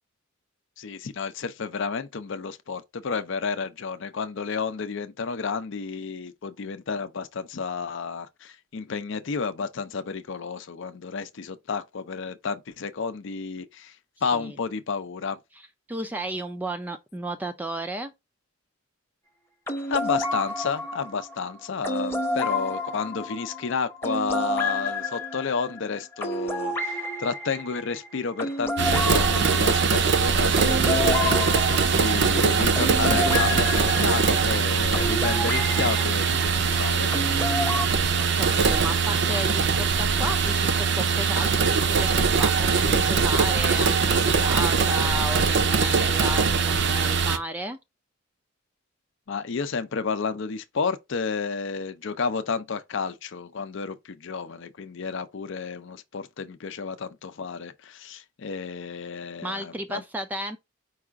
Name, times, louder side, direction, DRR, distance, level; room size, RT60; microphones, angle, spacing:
voice 1, 0.8-14.0 14.2-15.4 19.9-37.1 49.3-60.0, left 5 dB, 60° left, 0.5 m, -31 dB
voice 2, 15.6-18.1 38.2-47.8 59.4-60.6, right 1 dB, 10° right, 0.3 m, -33 dB
sound 1, 19.7-36.0 37.1-37.9, left 1 dB, 10° left, 0.8 m, -30 dB
sound 2, 28.8-47.4, right 5 dB, 60° right, 0.6 m, -22 dB
4.8 x 2.4 x 4.5 m
head